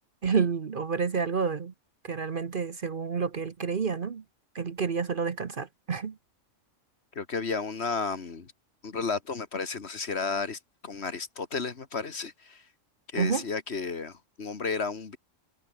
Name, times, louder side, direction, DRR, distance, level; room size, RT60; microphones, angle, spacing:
voice 1, 0.2-1.7 2.0-4.2 4.5-6.2 13.2-13.4, right 5 dB, 45° right, 1.1 m, -29 dB
voice 2, 7.2-8.5 8.8-12.6 13.1-15.2, left 4 dB, 55° left, 1.9 m, -33 dB
omnidirectional pair, 1.3 m